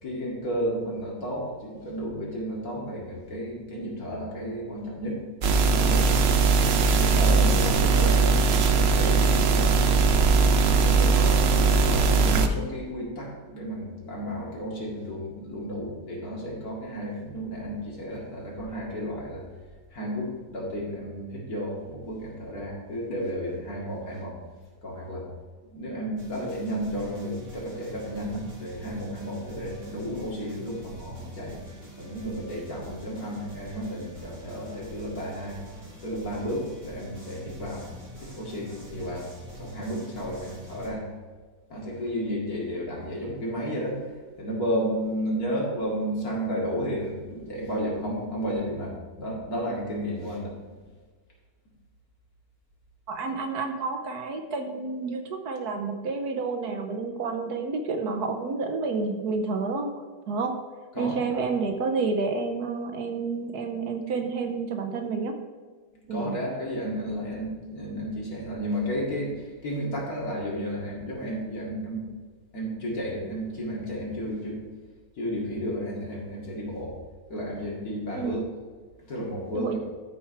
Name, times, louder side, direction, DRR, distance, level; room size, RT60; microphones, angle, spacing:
voice 1, 0.0-5.2 5.7-6.1 6.6-9.9 10.3-19.4 19.9-24.4 24.8-25.3 25.7-31.6 32.0-35.6 36.0-37.9 38.2-39.3 39.6-41.1 41.7-44.1 44.4-50.5 60.9-61.5 66.1-72.1 72.5-74.6 75.2-77.0 77.3-78.4 79.0-79.8, equal, 55° left, -4 dB, 2.7 m, -32 dB
sound 1, 5.4-12.5, right 4 dB, 80° right, 0.5 m, -20 dB
sound 2, 26.2-40.9, equal, 45° right, 2.6 m, -45 dB
voice 2, 53.1-59.9 60.3-60.6 61.0-65.4 66.1-66.4 78.1-78.4 79.5-79.8, right 4 dB, 65° right, 5 dB, 1.3 m, -29 dB
13.0 x 4.6 x 4.4 m, 1.5 s
omnidirectional pair, 1.9 m